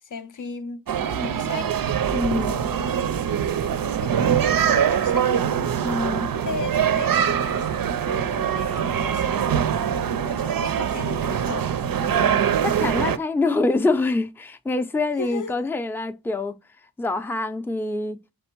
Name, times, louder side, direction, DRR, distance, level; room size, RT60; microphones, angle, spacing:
voice 1, 0.0-1.7 2.4-3.1 3.4-5.5 5.9-6.1 6.4-11.8 15.2-15.6, left 5 dB, 60° left, 0.5 m, -37 dB
sound 1, 0.9-13.2, right 8 dB, 70° right, 0.5 m, -23 dB
voice 2, 2.1-2.5 5.8-6.3 12.6-16.5 17.0-18.2, left 2 dB, 5° left, 0.4 m, -25 dB
3.5 x 3.4 x 4.4 m
wide cardioid pair, 90°, 36 cm